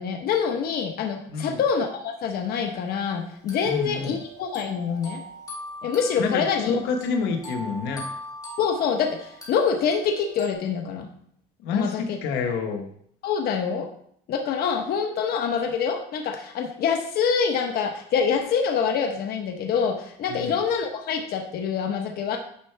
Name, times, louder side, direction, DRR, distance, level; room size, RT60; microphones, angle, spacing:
voice 1, 0.0-5.2 5.8-6.7 8.6-11.1 11.7-12.2 13.2-13.9 14.3-22.4, left 6 dB, 65° left, 3 dB, 1.1 m, -25 dB
voice 2, 1.3-1.6 3.6-4.2 6.2-8.0 11.6-12.9 20.3-20.6, left 5 dB, 90° left, 4 dB, 1.2 m, -28 dB
sound 1, 2.5-2.6 3.5-10.5, equal, 20° left, 2.7 m, -41 dB
10.0 x 5.6 x 3.4 m, 0.65 s
cardioid pair, 110°, 17 cm